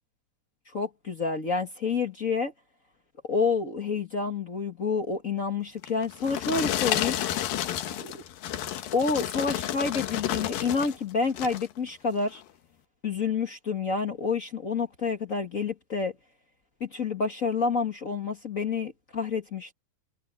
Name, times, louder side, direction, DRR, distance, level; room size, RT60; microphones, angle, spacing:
voice 1, 0.7-2.5 3.2-7.2 8.0-8.2 8.9-12.4 13.0-16.1 16.8-19.7, left 5 dB, 55° left, 0.9 m, -29 dB
sound 1, 5.8-11.0 11.3-11.7 12.3-12.4, left 12 dB, 75° left, 2.9 m, -31 dB
omnidirectional pair, 4.2 m